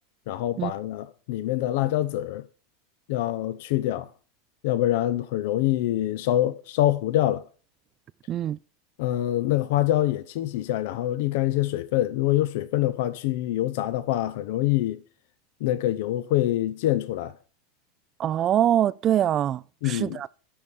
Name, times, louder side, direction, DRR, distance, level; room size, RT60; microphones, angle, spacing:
voice 1, 0.3-2.4 3.1-4.1 4.6-7.4 9.0-15.0 15.6-17.3 19.8-20.3, left 14 dB, 65° left, 0.5 m, -25 dB
voice 2, 8.3-8.6 18.2-20.3, right 11 dB, 40° right, 0.3 m, -24 dB
8.6 x 5.3 x 6.5 m
hypercardioid pair, 90°, 0 cm